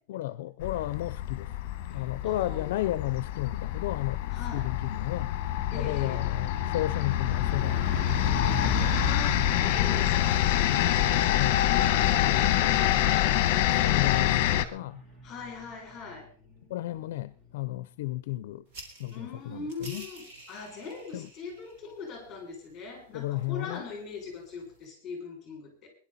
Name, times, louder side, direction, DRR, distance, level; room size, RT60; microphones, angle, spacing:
voice 1, 0.1-1.5 1.9-5.3 5.7-7.9 8.4-8.9 11.2-11.8 12.2-12.9 13.7-15.0 16.7-18.6 19.0-20.1 21.1-21.3 23.1-23.8, left 16 dB, 60° left, 0.6 m, -33 dB
sound 1, 0.6-14.6, left 12 dB, 45° left, 1.2 m, -26 dB
voice 2, 1.9-2.7 4.3-4.7 5.7-6.2 8.7-12.4 15.2-16.3 19.1-25.9, left 4 dB, 15° left, 6.5 m, -41 dB
Truck, 5.6-17.8, left 2 dB, 10° right, 1.5 m, -39 dB
sound 2, 18.7-24.8, right 2 dB, 45° right, 3.4 m, -51 dB
21.0 x 11.0 x 4.2 m
supercardioid pair, 180°, 0 cm